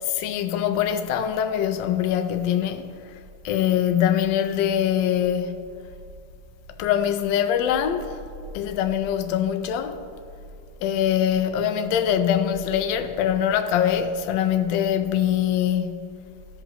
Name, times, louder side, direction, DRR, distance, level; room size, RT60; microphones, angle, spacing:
voice 1, 0.0-2.9 3.4-5.5 6.8-8.1 8.5-10.0 10.8-16.1, left 9 dB, 75° left, 1.2 m, -23 dB
15.0 x 5.3 x 2.9 m
omnidirectional pair, 2.2 m